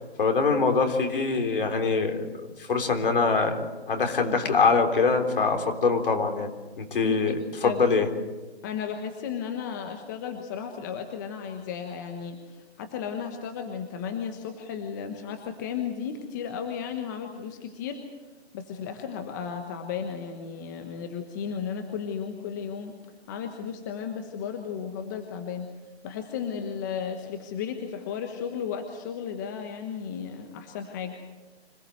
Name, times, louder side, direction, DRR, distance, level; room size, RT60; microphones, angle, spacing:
voice 1, 0.0-3.6 3.9-6.5 6.8-7.4 7.6-8.1, left 4 dB, 55° left, 4 dB, 3.8 m, -24 dB
voice 2, 6.9-7.3 7.6-7.8 8.6-18.0 18.5-22.9 23.3-25.7 26.0-31.2, left 7 dB, 20° left, 5 dB, 1.1 m, -34 dB
26.0 x 18.5 x 7.9 m, 1.2 s
hypercardioid pair, 165°, 32 cm